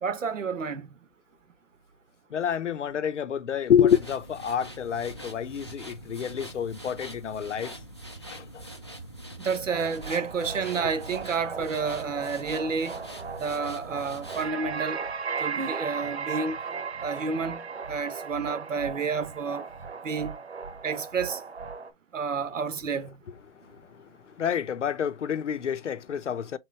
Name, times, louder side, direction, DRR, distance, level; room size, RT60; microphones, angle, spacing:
voice 1, 0.0-0.9 9.4-13.0 13.4-15.0 15.4-16.6 17.0-17.6 17.9-19.6 20.0-20.4 20.8-21.4 22.1-23.1, right 5 dB, 85° right, 1.1 m, -30 dB
voice 2, 2.3-7.7 8.3-8.6 10.1-10.2 23.5-26.6, left 8 dB, 70° left, 0.7 m, -28 dB
sound 1, 3.9-14.5, right 1 dB, 25° left, 0.4 m, -43 dB
sound 2, 9.7-21.9, right 5 dB, 60° right, 1.0 m, -36 dB
3.9 x 3.1 x 4.5 m
hypercardioid pair, 170°, 37 cm